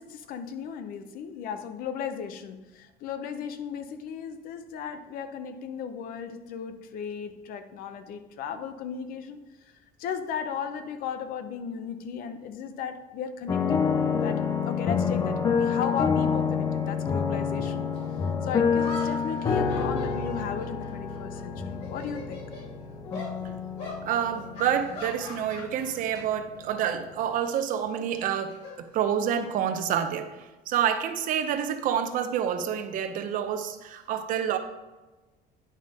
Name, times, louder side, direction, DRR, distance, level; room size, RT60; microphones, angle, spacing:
voice 1, 0.0-9.4 10.0-13.8 14.2-17.9 18.4-22.4, left 7 dB, 60° left, 10 dB, 0.7 m, -36 dB
sound 1, 13.5-26.5 26.8-26.9, left 6 dB, 25° left, 0.4 m, -28 dB
sound 2, 17.9-18.0 18.7-21.4 21.7-22.7 23.1-23.3 23.8-24.0 24.5-26.2 26.5-26.8 28.0-29.5, left 2 dB, 80° left, 2.8 m, -42 dB
voice 2, 24.0-34.6, right 9 dB, 55° right, 8 dB, 0.7 m, -28 dB
9.8 x 5.3 x 3.5 m, 1.2 s
cardioid pair, 170°, 16 cm